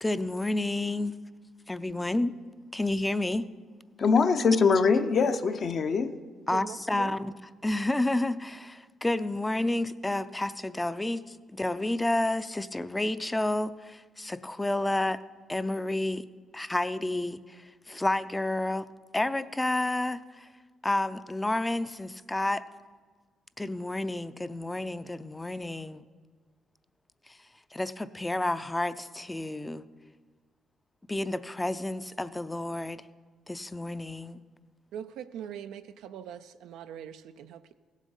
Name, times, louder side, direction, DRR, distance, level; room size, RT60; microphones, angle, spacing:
voice 1, 0.0-1.1 1.7-2.3 2.7-3.5 6.5-7.3 7.6-15.2 15.5-16.3 16.5-18.9 19.1-20.5 20.8-22.6 23.6-26.1 27.3-27.4 27.7-29.8 31.1-33.0 33.5-34.4, left 2 dB, 15° left, 0.4 m, -30 dB
voice 2, 4.0-6.1, left 5 dB, 50° left, 0.7 m, -23 dB
voice 3, 6.5-7.2 34.9-37.7, right 9 dB, 90° right, 0.3 m, -42 dB
16.0 x 7.4 x 5.4 m
cardioid pair, 90°, 0 cm